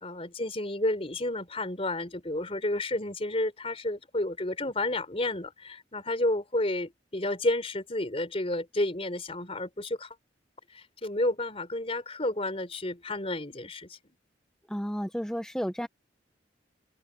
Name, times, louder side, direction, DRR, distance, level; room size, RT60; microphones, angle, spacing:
voice 1, 0.0-10.1 10.7-14.0, left 1 dB, 30° left, 3.9 m, -31 dB
voice 2, 14.7-15.9, equal, 5° left, 0.9 m, -32 dB
head